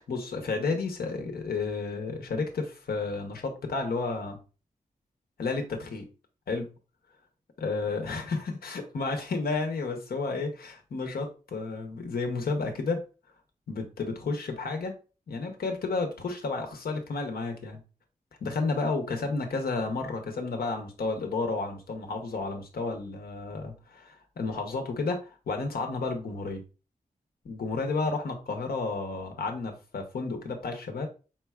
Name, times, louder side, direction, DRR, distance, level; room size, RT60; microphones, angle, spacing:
voice 1, 0.1-4.4 5.4-6.0 6.5-6.7 7.6-13.0 13.7-14.9 15.3-17.8 18.4-26.6 27.4-31.1, left 3 dB, 85° left, 4 dB, 1.0 m, -31 dB
4.4 x 3.9 x 2.4 m, 0.33 s
wide cardioid pair, 95°, 15 cm